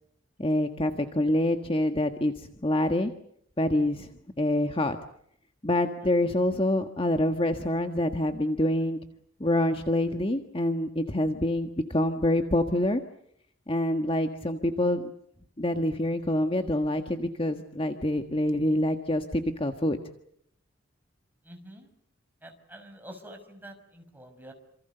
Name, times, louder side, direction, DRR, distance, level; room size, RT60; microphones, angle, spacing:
voice 1, 0.4-3.1 3.6-4.1 4.4-5.0 5.6-9.0 9.4-13.0 13.7-15.0 15.6-20.0, left 1 dB, 25° left, 6 dB, 1.5 m, -26 dB
voice 2, 21.4-21.9 22.4-24.5, right 1 dB, 10° right, 5 dB, 5.5 m, -47 dB
28.5 x 27.5 x 6.8 m, 0.70 s
head